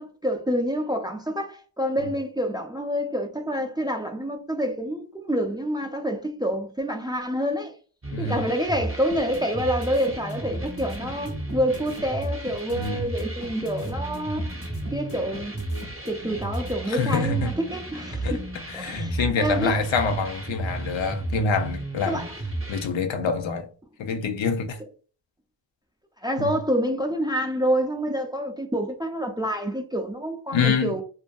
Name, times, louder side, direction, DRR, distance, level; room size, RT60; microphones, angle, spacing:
voice 1, 0.0-7.7 8.2-14.5 14.9-15.6 16.0-18.5 18.7-19.8 22.1-22.4 26.2-31.0, equal, 10° right, 0.3 m, -27 dB
sound 1, 8.0-22.9, right 2 dB, 30° right, 0.7 m, -34 dB
sound 2, 9.1-16.7, left 1 dB, 70° left, 1.0 m, -39 dB
voice 2, 16.9-17.5 18.2-18.4 18.7-22.2 22.7-23.7 24.0-24.8 26.4-26.5 30.5-30.9, left 5 dB, 85° left, 0.6 m, -26 dB
2.5 x 2.5 x 2.2 m
wide cardioid pair, 65°, 44 cm